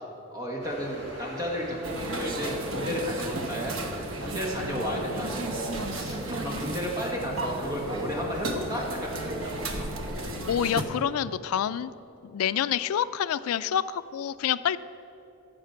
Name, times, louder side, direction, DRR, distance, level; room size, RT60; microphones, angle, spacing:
voice 1, 0.3-3.8 4.2-9.9, equal, 20° right, -2 dB, 1.7 m, -33 dB
sound 1, 0.6-6.3, equal, 50° right, 2.1 m, -43 dB
sound 2, 1.8-10.8, right 1 dB, 70° right, 1.0 m, -33 dB
voice 2, 10.2-11.9 12.2-14.8, left 9 dB, 90° left, 15 dB, 0.3 m, -28 dB
15.5 x 5.1 x 6.0 m, 3.0 s
head